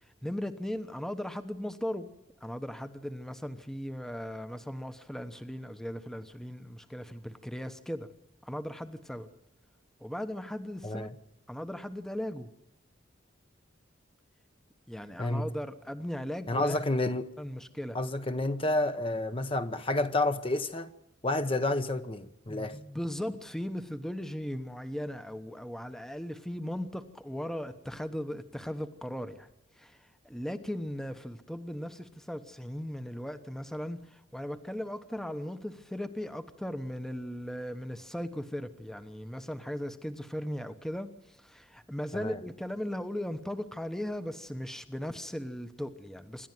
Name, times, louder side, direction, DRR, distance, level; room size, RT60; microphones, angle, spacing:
voice 1, 0.2-2.1 2.4-8.1 8.4-9.3 10.0-11.1 11.5-12.5 14.9-16.8 17.4-18.0 22.5-29.5 29.8-46.5, equal, 5° left, 1.0 m, -37 dB
voice 2, 16.5-17.3 17.9-20.9 21.2-22.8 42.1-42.4, left 2 dB, 30° left, 1.0 m, -30 dB
27.0 x 12.0 x 9.2 m
head